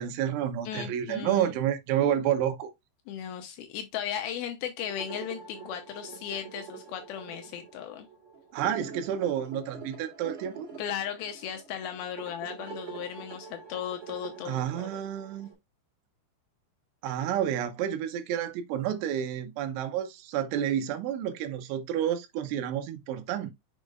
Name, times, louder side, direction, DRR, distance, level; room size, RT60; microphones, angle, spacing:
voice 1, 0.0-2.7 8.5-10.7 14.5-15.5 17.0-23.5, right 10 dB, 85° right, 3.2 m, -30 dB
voice 2, 0.7-1.5 3.1-8.1 10.8-15.0, left 9 dB, 90° left, 2.1 m, -36 dB
sound 1, 4.8-15.5, right 5 dB, 30° right, 3.7 m, -45 dB
7.2 x 5.5 x 2.4 m
omnidirectional pair, 5.4 m